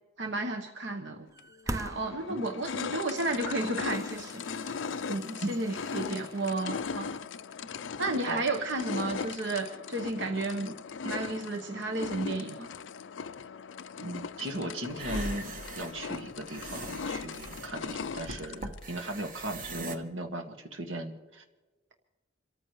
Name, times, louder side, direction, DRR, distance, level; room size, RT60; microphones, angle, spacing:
voice 1, 0.2-1.3 1.7-4.7 5.1-7.1 8.0-10.7 11.0-12.7, right 2 dB, 65° right, 4 dB, 1.1 m, -32 dB
sound 1, 1.3-2.7 3.3-3.4 3.8-7.7, right 1 dB, 15° right, 0.4 m, -44 dB
sound 2, 1.4-1.5 2.0-18.8, left 5 dB, 70° left, 0.5 m, -38 dB
voice 2, 14.0-15.5 15.8-21.4, right 1 dB, 85° right, 4 dB, 1.9 m, -37 dB
sound 3, 14.9-20.0, right 2 dB, 45° right, 1.3 m, -41 dB
28.0 x 14.0 x 3.2 m, 1.1 s
head